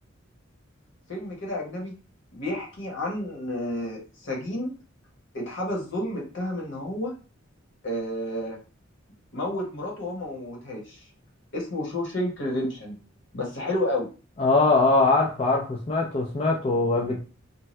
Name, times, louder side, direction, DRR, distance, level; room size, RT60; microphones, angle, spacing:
voice 1, 1.1-1.9 2.3-4.7 5.3-7.1 7.8-8.6 9.3-11.0 11.5-13.0 13.3-14.1, left 1 dB, 60° left, -1 dB, 1.1 m, -30 dB
voice 2, 14.4-17.2, left 3 dB, 30° left, -1 dB, 0.4 m, -22 dB
2.7 x 2.2 x 3.1 m, 0.35 s
head